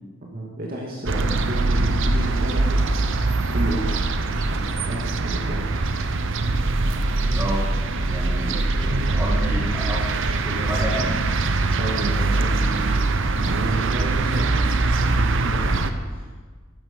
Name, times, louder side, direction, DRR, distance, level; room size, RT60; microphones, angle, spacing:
voice 1, 0.3-2.9 3.5-5.8 11.8-14.6 15.0-15.8 16.2-16.3, right 1 dB, 45° right, -2 dB, 2.1 m, -31 dB
sound 1, 1.1-15.9, right 2 dB, 65° right, 0.9 m, -22 dB
voice 2, 7.3-11.1, equal, 15° right, -5 dB, 2.1 m, -31 dB
13.5 x 12.0 x 5.3 m, 1.5 s
head